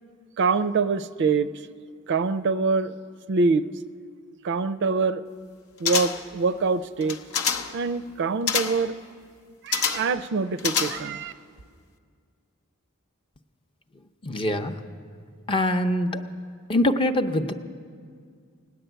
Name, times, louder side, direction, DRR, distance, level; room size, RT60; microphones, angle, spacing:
voice 1, 0.4-1.5 2.1-2.9 3.3-3.6 4.4-5.2 5.8-7.2 7.7-9.0 9.6-11.3, right 4 dB, 55° right, 13 dB, 0.4 m, -24 dB
sound 1, 5.8-6.4 7.0-7.8 8.5-8.9 9.7-10.2 10.6-11.3 11.6-11.7, left 6 dB, 90° left, 0.8 m, -27 dB
voice 2, 14.2-14.8 15.5-16.2 16.7-17.5, left 1 dB, 25° left, 6 dB, 0.6 m, -23 dB
17.5 x 10.0 x 8.0 m, 2.1 s
head